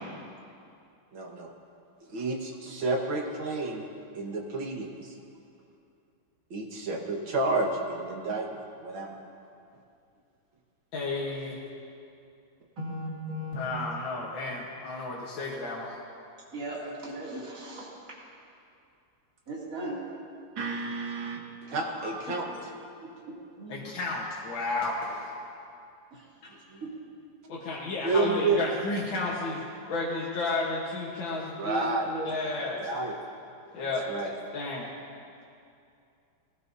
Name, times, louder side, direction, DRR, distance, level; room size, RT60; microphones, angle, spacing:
voice 1, 1.1-1.5 2.1-3.9 4.1-5.2 6.5-8.5 8.8-9.2 20.6-22.4 26.7-26.8 28.0-28.6 31.6-32.1 32.6-33.2 33.8-34.3, right 3 dB, 80° right, -1 dB, 2.3 m, -30 dB
voice 2, 10.9-11.6 13.6-16.0 23.7-25.3 26.4-26.5 27.5-32.8 33.7-34.1 34.5-34.9, left 3 dB, 75° left, -4 dB, 2.1 m, -32 dB
voice 3, 12.8-13.6 16.5-17.9 19.5-20.0 21.8-22.4 23.0-23.9 26.1-26.9, right 1 dB, 45° right, -7 dB, 3.3 m, -38 dB
20.0 x 16.5 x 2.8 m, 2.6 s
omnidirectional pair, 2.1 m